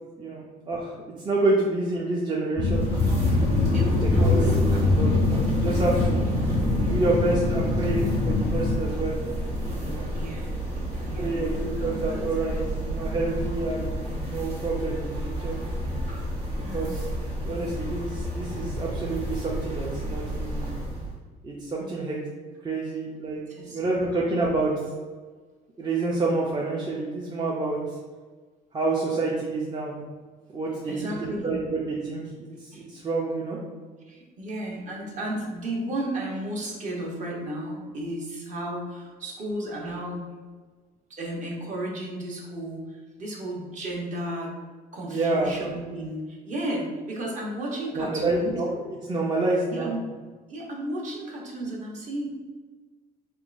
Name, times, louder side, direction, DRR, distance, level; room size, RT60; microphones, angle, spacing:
voice 1, 0.2-0.9 1.2-2.9 4.0-6.3 6.8-9.2 9.8-10.1 11.2-15.6 16.5-17.0 17.4-20.6 21.4-22.2 22.6-23.4 23.7-24.7 25.8-28.0 28.7-29.9 30.5-31.1 31.4-33.6 45.1-45.5 47.9-48.8 49.1-49.9, right 2 dB, 25° right, -3 dB, 0.5 m, -28 dB
sound 1, 2.6-8.8, left 3 dB, 50° left, 0.5 m, -25 dB
sound 2, 2.6-21.1, equal, 75° right, 1.3 m, -29 dB
voice 2, 3.7-5.4 5.7-6.5 10.1-10.5 11.0-12.3 16.1-16.3 16.6-17.0 17.5-17.7 21.8-22.1 23.5-23.8 30.9-31.6 32.7-32.9 34.1-40.3 41.1-44.5 44.9-48.5 49.7-50.0 50.5-52.3, right 1 dB, 45° right, -2 dB, 0.9 m, -34 dB
3.6 x 3.0 x 2.5 m, 1.4 s
cardioid pair, 110°, 17 cm